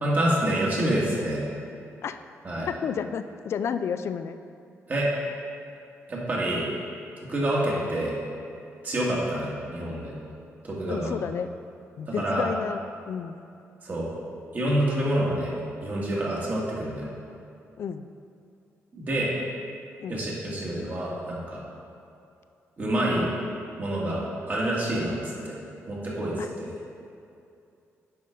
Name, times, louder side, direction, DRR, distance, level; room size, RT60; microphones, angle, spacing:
voice 1, 0.0-1.5 2.4-2.7 4.9-5.1 6.1-6.7 7.3-8.2 8.8-10.1 10.6-11.1 12.2-12.5 13.8-14.1 14.5-15.6 15.8-17.1 18.9-19.3 20.1-21.6 22.8-23.3 23.8-24.2 24.5-25.2 25.4-25.6 25.9-26.7, right 1 dB, 35° right, -5 dB, 1.8 m, -27 dB
voice 2, 2.7-4.4 10.9-11.5 12.0-13.4 17.8-18.1 20.0-20.2 26.4-26.5, left 7 dB, 60° left, 10 dB, 0.3 m, -31 dB
9.2 x 5.6 x 3.7 m, 2.6 s
cardioid pair, 130°, 5 cm